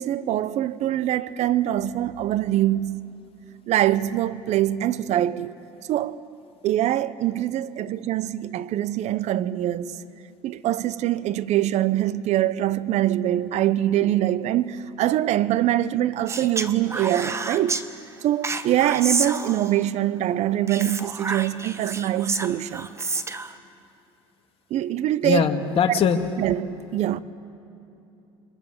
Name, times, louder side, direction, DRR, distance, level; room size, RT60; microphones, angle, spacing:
voice 1, 0.0-3.1 3.7-5.5 5.9-6.2 6.6-9.9 10.4-17.8 18.2-22.9 24.7-25.5 26.4-27.2, right 13 dB, 55° right, 0.9 m, -24 dB
Speech, 16.3-17.8 18.4-19.9 20.7-23.5, right 3 dB, 20° right, 1.3 m, -29 dB
voice 2, 25.2-26.2, left 7 dB, 45° left, 2.0 m, -21 dB
27.5 x 23.0 x 7.3 m
supercardioid pair, 90°, 14 cm